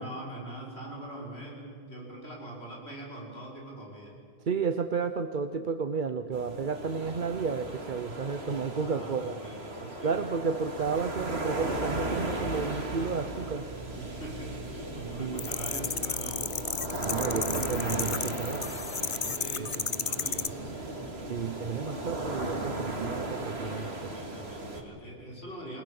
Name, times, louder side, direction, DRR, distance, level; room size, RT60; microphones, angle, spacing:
voice 1, 0.0-4.2 8.4-10.2 13.9-16.7 19.3-20.9 23.9-25.8, right 1 dB, 75° left, -2 dB, 6.1 m, -43 dB
voice 2, 4.4-9.4 10.0-13.6 15.2-15.4 17.0-18.7 21.3-24.1, right 5 dB, 50° right, 9 dB, 0.9 m, -32 dB
sound 1, 6.3-24.8, right 2 dB, 75° right, 2.9 m, -36 dB
sound 2, 10.8-19.5, right 1 dB, 30° right, 1.4 m, -44 dB
sound 3, 15.4-20.5, left 5 dB, 35° left, 0.7 m, -33 dB
30.0 x 20.5 x 7.0 m, 2.6 s
omnidirectional pair, 1.1 m